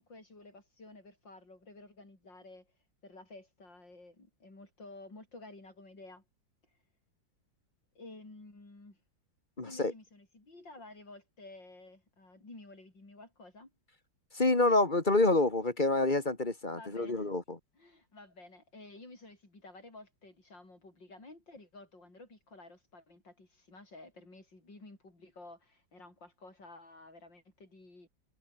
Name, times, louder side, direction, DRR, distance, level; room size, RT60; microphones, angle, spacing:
voice 1, 0.0-2.7 3.0-6.2 7.9-9.0 9.6-13.7 16.7-17.3 17.7-28.1, left 2 dB, 75° left, 8.2 m, -52 dB
voice 2, 9.6-9.9 14.3-17.6, left 2 dB, 25° left, 2.1 m, -27 dB
omnidirectional pair, 2.0 m